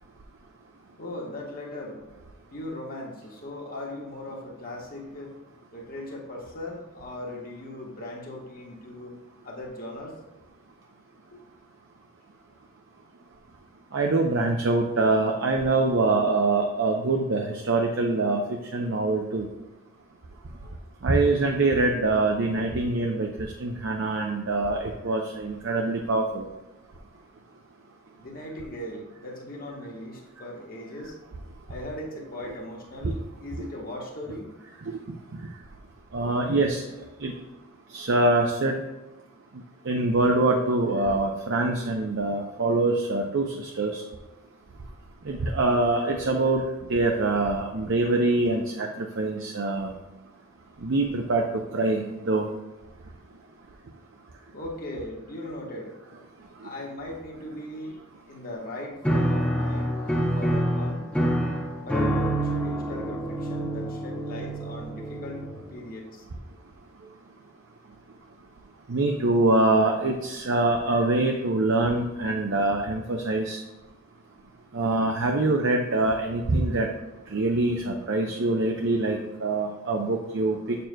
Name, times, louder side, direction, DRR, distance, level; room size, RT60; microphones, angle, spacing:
voice 1, 1.0-2.0 2.5-5.3 5.7-9.2 9.4-10.1 11.3-11.4 28.2-31.1 31.7-34.5 54.5-55.9 56.6-58.0 58.3-59.9 60.3-61.0 61.8-66.2, left 1 dB, 40° left, -1 dB, 1.3 m, -38 dB
voice 2, 13.9-18.4 18.7-19.5 21.0-23.3 23.6-26.4 33.0-33.1 33.6-33.7 36.1-36.8 37.2-37.3 37.9-38.7 39.9-43.9 45.3-46.6 46.9-48.9 49.2-49.9 50.8-51.4 51.7-52.0 52.3-52.5 68.9-73.6 74.7-76.9 77.3-80.8, right 2 dB, 60° right, 2 dB, 0.6 m, -24 dB
Piano, 59.0-65.8, right 1 dB, 5° left, 0.7 m, -27 dB
7.6 x 6.7 x 2.2 m, 1.1 s
head